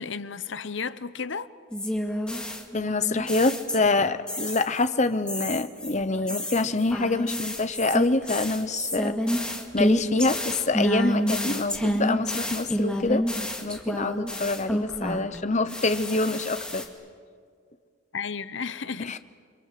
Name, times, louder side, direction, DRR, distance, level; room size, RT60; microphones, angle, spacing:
voice 1, 0.0-1.5 18.1-19.2, left 5 dB, 65° left, 0.9 m, -33 dB
sound 1, 1.7-4.0 4.3-4.8 5.3-15.4 15.7-16.8, equal, 5° left, 2.2 m, -29 dB
voice 2, 2.7-9.1 9.7-13.2 13.6-16.8 19.0-19.2, left 3 dB, 35° left, 1.0 m, -26 dB
29.5 x 24.0 x 7.7 m
head